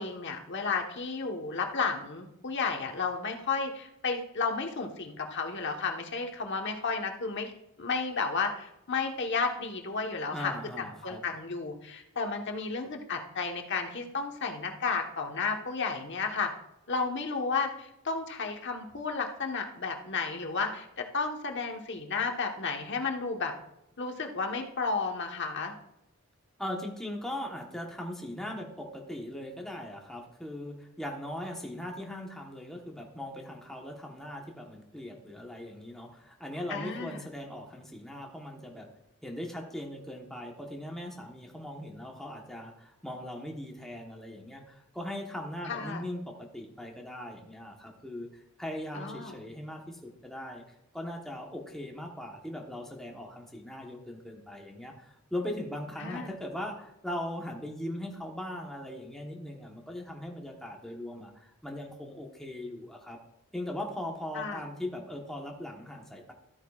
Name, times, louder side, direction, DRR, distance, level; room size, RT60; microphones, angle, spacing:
voice 1, 0.0-7.5 7.8-10.5 10.8-16.5 16.9-23.5 24.0-25.7 36.7-37.3 45.7-46.1 48.9-49.4 56.0-56.4 64.3-64.7, left 4 dB, 55° left, 3 dB, 1.2 m, -32 dB
voice 2, 10.3-11.2 26.6-38.9 39.2-50.6 50.9-63.2 63.5-66.3, left 1 dB, ahead, 0 dB, 1.1 m, -39 dB
13.5 x 9.0 x 2.4 m, 0.83 s
head